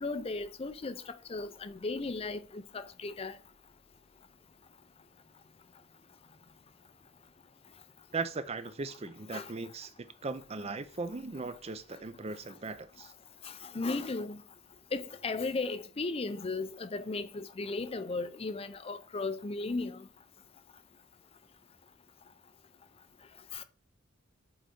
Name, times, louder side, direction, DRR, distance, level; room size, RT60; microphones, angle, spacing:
voice 1, 0.0-3.4 9.3-9.5 13.4-14.4 14.9-20.0 23.5-23.6, left 3 dB, 30° left, 0.5 m, -36 dB
voice 2, 8.1-13.1, right 3 dB, 30° right, 0.5 m, -38 dB
7.9 x 4.0 x 4.9 m
head